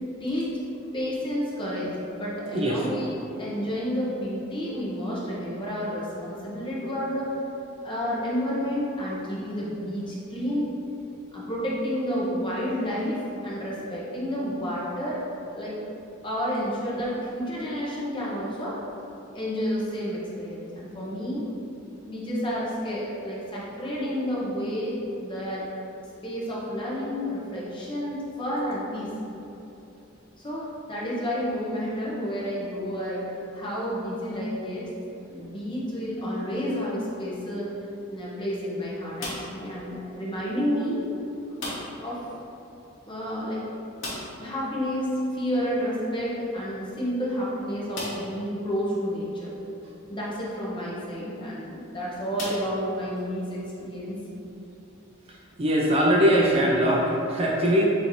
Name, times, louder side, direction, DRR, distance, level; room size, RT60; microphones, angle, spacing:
voice 1, 0.2-0.5 0.9-7.3 7.8-10.7 11.3-15.2 15.5-15.9 16.2-18.8 19.3-21.5 22.1-25.7 26.2-29.1 30.4-33.3 33.5-34.9 35.2-37.7 38.1-41.0 41.5-41.7 42.0-42.2 43.0-43.6 44.4-49.5 50.1-54.2, equal, 25° left, -6 dB, 0.9 m, -30 dB
sound 1, 39.2-39.7 41.6-42.1 42.4-42.5 42.8-42.9 44.0-44.5 46.3-46.4 47.0-47.1 47.9-48.4 49.1-49.2 51.2-51.5 52.3-53.2, left 2 dB, 60° left, 1.1 m, -36 dB
voice 2, 55.6-57.8, equal, 30° right, -3 dB, 0.4 m, -21 dB
6.3 x 2.7 x 3.1 m, 2.9 s
head